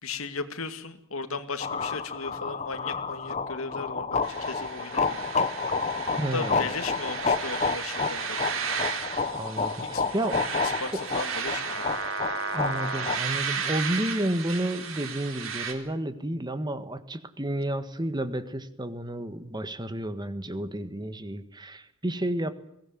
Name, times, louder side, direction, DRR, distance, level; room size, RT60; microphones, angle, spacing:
voice 1, 0.0-5.3 6.3-8.8 9.9-10.0 10.6-12.0, left 4 dB, 85° left, 10 dB, 2.3 m, -36 dB
sound 1, 1.6-13.2, left 4 dB, 35° left, 1.3 m, -30 dB
sound 2, 4.2-15.7, right 5 dB, 70° right, 3.9 m, -34 dB
voice 2, 6.2-6.6 9.3-10.4 12.5-22.5, right 1 dB, 20° right, 11 dB, 1.6 m, -31 dB
22.0 x 18.0 x 9.4 m, 0.80 s
head